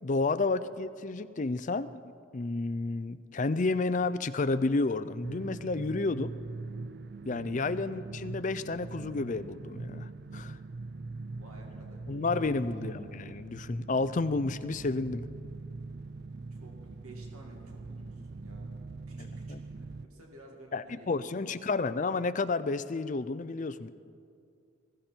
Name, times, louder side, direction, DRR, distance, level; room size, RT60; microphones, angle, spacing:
voice 1, 0.0-2.0 2.3-6.3 7.3-10.6 12.1-15.2 19.5-19.6 20.7-23.9, left 3 dB, 35° left, 13 dB, 0.4 m, -31 dB
sound 1, 5.2-20.0, right 3 dB, 50° right, 0.4 m, -42 dB
voice 2, 11.4-13.1 16.5-18.7 19.1-21.9, right 1 dB, 90° right, 0 dB, 2.4 m, -53 dB
20.5 x 15.0 x 4.5 m, 2.3 s
head